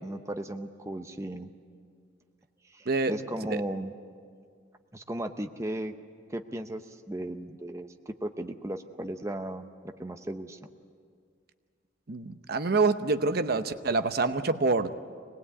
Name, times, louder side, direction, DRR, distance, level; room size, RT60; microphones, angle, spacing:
voice 1, 0.0-1.5 2.7-3.9 4.9-5.9 6.3-9.7 10.0-10.6, right 1 dB, 15° right, 6 dB, 0.7 m, -36 dB
voice 2, 12.1-14.9, right 3 dB, 55° right, 10 dB, 0.8 m, -26 dB
25.0 x 19.0 x 8.4 m, 2.1 s
head